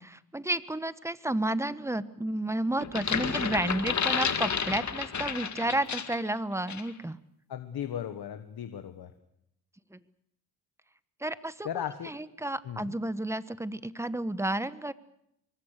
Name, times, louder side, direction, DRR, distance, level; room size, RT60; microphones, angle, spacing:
voice 1, 0.0-7.2 9.9-10.0 11.2-11.7 12.0-14.9, right 1 dB, 5° right, 14 dB, 1.3 m, -31 dB
sound 1, 2.8-6.3 6.7-6.9, left 6 dB, 50° left, 2.2 m, -31 dB
voice 2, 7.5-9.1 11.6-12.1 12.6-12.9, left 9 dB, 75° left, 9 dB, 1.6 m, -36 dB
25.0 x 23.0 x 6.7 m, 0.76 s
cardioid pair, 95°, 38 cm